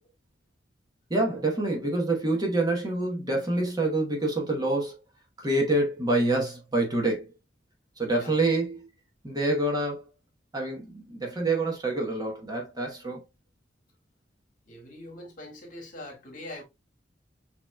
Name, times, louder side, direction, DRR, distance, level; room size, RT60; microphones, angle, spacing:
voice 1, 1.1-5.0 5.4-7.2 8.0-8.8 9.2-10.0 10.5-13.2, right 2 dB, 20° right, 1.0 m, -26 dB
voice 2, 14.7-16.6, left 1 dB, 45° left, 1.7 m, -43 dB
6.7 x 3.0 x 2.2 m
head